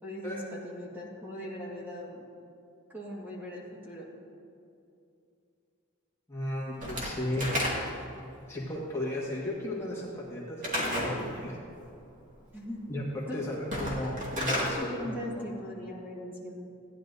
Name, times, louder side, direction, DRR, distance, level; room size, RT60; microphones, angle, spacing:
voice 1, 0.0-2.3 2.9-4.1 12.5-12.8 13.3-13.4 14.7-16.6, equal, 10° right, -5 dB, 1.6 m, -40 dB
voice 2, 6.3-7.6 8.5-11.6 12.9-15.4, left 1 dB, 15° left, -5 dB, 1.6 m, -35 dB
Slam / Wood, 6.8-8.1 10.6-11.2 13.6-14.7, equal, 40° right, 2.1 m, -31 dB
15.5 x 10.5 x 2.7 m, 2.5 s
head